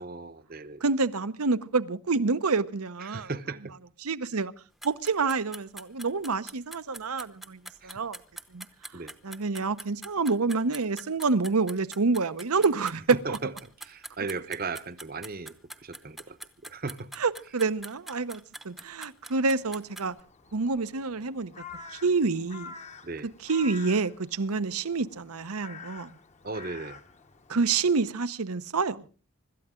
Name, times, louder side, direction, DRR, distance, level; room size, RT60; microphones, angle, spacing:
voice 1, 0.0-0.8 3.0-3.7 7.8-8.0 8.9-9.1 13.1-17.1 23.0-23.3 26.4-27.0, right 4 dB, 40° right, 0.9 m, -37 dB
voice 2, 0.8-3.3 4.0-4.5 4.8-8.2 8.5-8.7 9.2-13.0 13.3-13.4 17.2-20.1 20.5-21.5 21.9-22.7 23.5-26.1 27.5-29.0, right 4 dB, 85° right, 0.8 m, -28 dB
sound 1, 4.8-20.2, right 1 dB, ahead, 0.8 m, -44 dB
Crow, 19.6-28.1, left 5 dB, 30° left, 0.9 m, -48 dB
25.5 x 13.0 x 3.7 m
head